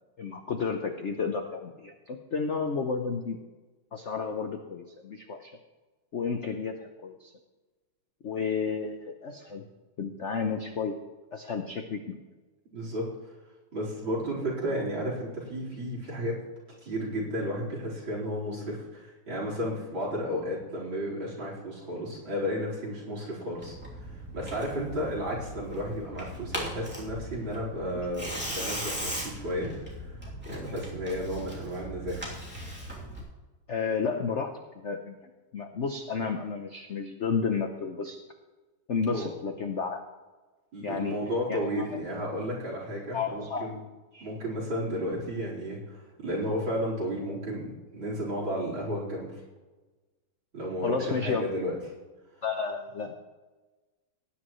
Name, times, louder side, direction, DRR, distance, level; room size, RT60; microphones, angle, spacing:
voice 1, 0.2-3.4 3.9-5.6 6.1-7.3 8.2-9.6 10.0-11.0 11.3-12.2 27.9-28.0 33.7-38.2 38.9-40.0 40.8-41.2 41.5-42.0 43.1-43.7 44.1-44.3 50.8-51.5 52.4-53.2, left 5 dB, 75° left, 5 dB, 0.6 m, -32 dB
voice 2, 12.7-13.1 13.7-16.4 16.8-32.2 39.1-39.3 40.7-43.8 44.2-49.3 50.5-51.7, equal, 60° right, -4 dB, 5.0 m, -33 dB
Tearing, 23.6-33.2, equal, 5° right, 2.8 m, -38 dB
19.0 x 10.0 x 3.1 m, 1.2 s
omnidirectional pair, 2.4 m